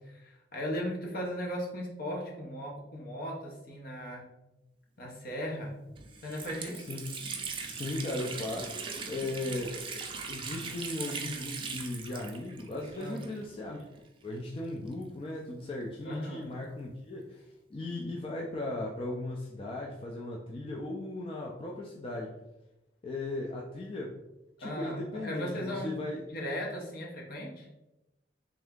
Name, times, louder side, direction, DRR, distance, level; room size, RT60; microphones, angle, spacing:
voice 1, 0.0-4.3 5.0-5.7 6.2-6.8 12.9-13.2 16.0-16.5 24.6-26.0 26.3-27.7, equal, 55° left, -1 dB, 0.9 m, -37 dB
Water tap faucet, 5.5-5.6 6.0-13.7 13.9-14.0 14.9-16.4, right 5 dB, 30° right, 0.4 m, -40 dB
voice 2, 6.8-7.1 7.7-8.7 9.1-13.8 14.2-22.4 23.0-24.1 24.6-26.2, left 2 dB, 30° left, -2 dB, 0.4 m, -37 dB
3.4 x 2.7 x 3.5 m, 0.95 s
head